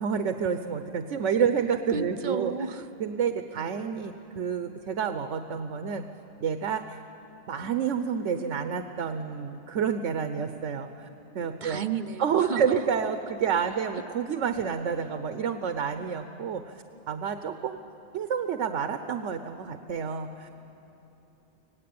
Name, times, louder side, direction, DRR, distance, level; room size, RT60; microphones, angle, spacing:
voice 1, 0.0-2.5 3.0-6.1 6.4-7.0 7.5-11.1 11.3-11.8 12.2-16.8 17.1-17.8 18.1-20.6, right 7 dB, 80° right, 8 dB, 1.2 m, -29 dB
voice 2, 1.9-2.9 11.6-12.8, right 6 dB, 45° right, 10 dB, 0.8 m, -32 dB
25.5 x 18.0 x 8.6 m, 3.0 s
omnidirectional pair, 1.2 m